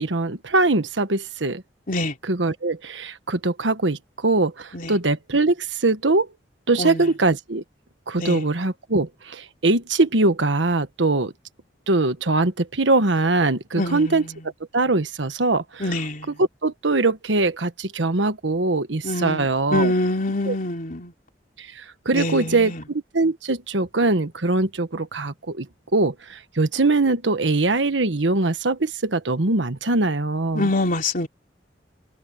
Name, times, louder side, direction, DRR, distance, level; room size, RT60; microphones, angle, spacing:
voice 1, 0.0-1.6 2.2-6.3 6.7-7.6 8.1-11.3 11.9-14.2 14.7-15.8 16.4-19.9 20.4-20.6 21.6-21.7 22.0-25.7 25.9-30.7, right 2 dB, 90° right, 1.4 m, -22 dB
voice 2, 6.8-7.1 8.2-8.4 13.8-14.3 15.8-16.3 19.0-21.1 22.1-22.8 30.5-31.3, left 1 dB, 50° left, 3.3 m, -25 dB
head